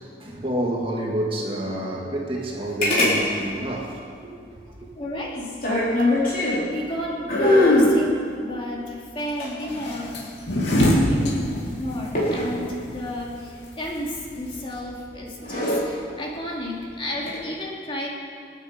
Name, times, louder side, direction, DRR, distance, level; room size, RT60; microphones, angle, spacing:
voice 1, 0.0-4.8, right 1 dB, 30° right, -2 dB, 2.0 m, -29 dB
sound 1, 2.8-3.2 3.4-3.5 5.4-6.7 7.3-7.9 9.2-10.4 12.2-12.5 14.4-14.7 15.3-15.8 17.1-17.4, left 1 dB, 50° left, 4.3 m, -21 dB
voice 2, 5.0-5.5 6.7-10.2 10.9-18.1, left 1 dB, 30° left, -3 dB, 2.7 m, -32 dB
sound 2, 9.7-14.8, equal, 75° left, 3.0 m, -25 dB
27.0 x 9.4 x 5.2 m, 2.3 s
head